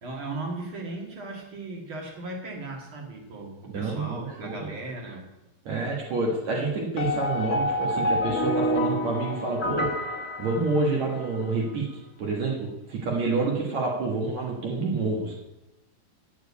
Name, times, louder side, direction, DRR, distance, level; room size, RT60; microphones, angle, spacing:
voice 1, 0.0-5.2, right 2 dB, 45° right, 0 dB, 2.3 m, -37 dB
voice 2, 3.7-4.7 5.7-9.9 10.4-11.9 12.2-15.4, right 3 dB, 60° right, -3 dB, 2.6 m, -28 dB
sound 1, 7.0-11.3, left 1 dB, 60° left, 0.9 m, -28 dB
9.1 x 7.1 x 8.4 m, 0.96 s
omnidirectional pair, 4.0 m